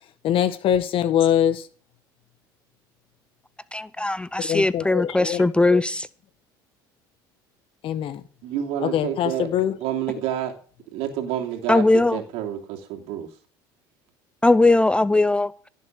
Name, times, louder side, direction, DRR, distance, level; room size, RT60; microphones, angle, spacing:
voice 1, 0.2-1.7 4.5-5.8 7.8-8.2 8.8-9.8, left 10 dB, 60° left, 1.6 m, -23 dB
voice 2, 3.7-6.1 11.7-12.2 14.4-15.5, left 2 dB, 10° left, 0.5 m, -19 dB
voice 3, 8.4-9.5 9.8-10.5 10.9-13.3, right 10 dB, 75° right, 2.9 m, -29 dB
16.0 x 7.6 x 6.4 m
supercardioid pair, 85°, 11 cm